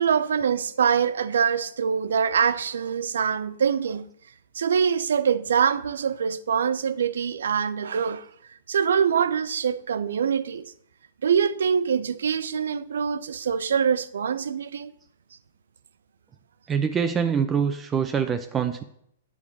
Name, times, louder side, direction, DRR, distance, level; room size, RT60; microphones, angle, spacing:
voice 1, 0.0-4.1 4.5-8.3 8.7-10.7 11.2-14.9, right 7 dB, 80° right, 0.6 m, -24 dB
voice 2, 16.7-18.8, right 7 dB, 20° right, 0.6 m, -24 dB
8.8 x 4.9 x 7.2 m
hypercardioid pair, 125°, 0 cm